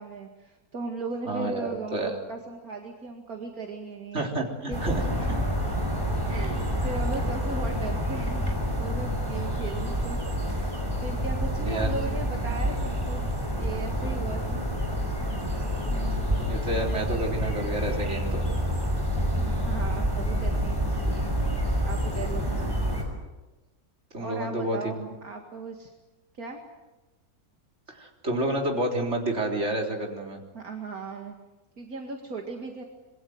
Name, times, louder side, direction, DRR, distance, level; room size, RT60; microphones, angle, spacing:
voice 1, 0.0-4.2 4.7-5.5 6.2-14.6 19.3-21.4 21.8-22.8 24.2-25.9 26.3-26.6 30.5-31.4 31.8-32.8, right 3 dB, 70° right, 2 dB, 2.6 m, -37 dB
voice 2, 1.3-2.1 4.1-5.0 11.7-12.1 12.5-12.6 15.9-18.4 24.1-25.1 27.9-30.4, right 1 dB, 45° right, 1 dB, 4.1 m, -30 dB
sound 1, 4.7-23.0, equal, 15° right, 5.7 m, -28 dB
26.5 x 22.0 x 7.9 m, 1.1 s
omnidirectional pair, 1.6 m